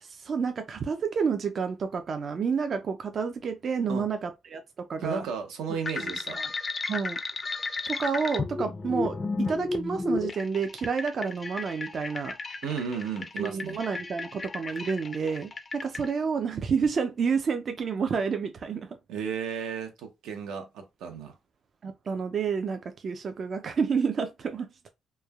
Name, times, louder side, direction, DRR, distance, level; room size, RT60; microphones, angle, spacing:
voice 1, 0.0-4.6 4.9-5.2 6.0-6.5 6.9-7.2 7.9-12.4 13.4-18.9 21.8-24.7, right 5 dB, 50° right, 0.4 m, -29 dB
voice 2, 5.0-6.4 12.6-13.8 19.1-21.3, right 6 dB, 90° right, 0.7 m, -34 dB
sound 1, 5.9-16.1, left 3 dB, 30° left, 0.4 m, -33 dB
3.1 x 2.1 x 2.3 m
cardioid pair, 90°, 0 cm